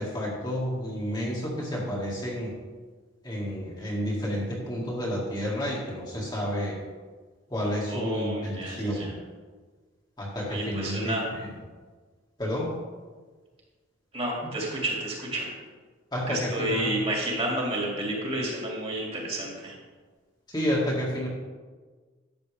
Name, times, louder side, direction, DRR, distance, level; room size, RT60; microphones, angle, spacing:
voice 1, 0.0-2.5 3.2-6.8 7.5-9.1 10.2-11.5 12.4-12.7 16.1-17.0 20.5-21.3, equal, 20° left, -5 dB, 1.8 m, -30 dB
voice 2, 7.9-9.1 10.5-11.2 14.1-15.5 16.3-19.7, right 1 dB, 30° right, -3 dB, 2.4 m, -30 dB
12.0 x 7.7 x 3.4 m, 1.4 s
head